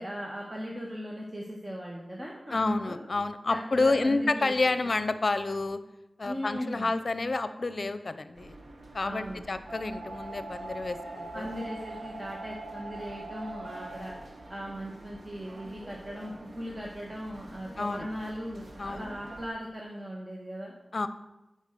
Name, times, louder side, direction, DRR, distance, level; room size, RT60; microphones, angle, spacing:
voice 1, 0.0-3.0 3.5-4.5 6.2-6.9 9.0-9.4 11.3-14.1 14.5-20.7, equal, 30° right, -3 dB, 1.5 m, -38 dB
voice 2, 2.5-5.8 6.2-8.6 8.9-11.5 17.8-18.1 18.8-19.0 20.9-21.1, left 3 dB, 60° left, 12 dB, 0.6 m, -29 dB
sound 1, 8.4-19.5, right 2 dB, 65° right, 1.3 m, -44 dB
9.1 x 5.4 x 6.7 m, 0.98 s
wide cardioid pair, 60°, 0 cm